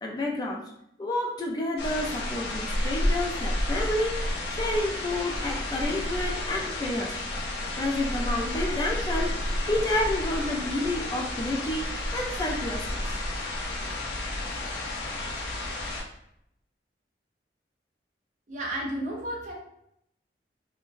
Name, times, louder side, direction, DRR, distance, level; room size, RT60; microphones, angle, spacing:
voice 1, 0.0-0.6 1.0-4.2 4.5-7.1 7.8-13.0, left 1 dB, 25° left, 0 dB, 0.3 m, -30 dB
sound 1, 1.8-16.0, left 1 dB, 70° left, 0.6 m, -31 dB
voice 2, 18.5-19.5, right 1 dB, 45° right, -2 dB, 0.7 m, -32 dB
3.7 x 2.1 x 2.5 m, 0.75 s
head